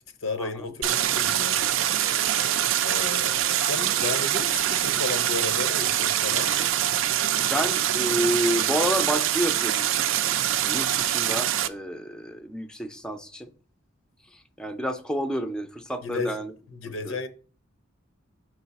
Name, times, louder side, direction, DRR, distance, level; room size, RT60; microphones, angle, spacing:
voice 1, 0.2-1.7 2.8-6.5 16.0-16.4 16.7-17.3, left 3 dB, 85° left, 0.8 m, -33 dB
Stream, 0.8-11.7, right 11 dB, 80° right, 0.4 m, -24 dB
voice 2, 7.4-9.9 10.6-13.5 14.3-16.5 16.8-17.2, equal, 5° left, 0.4 m, -29 dB
5.1 x 4.7 x 4.1 m
head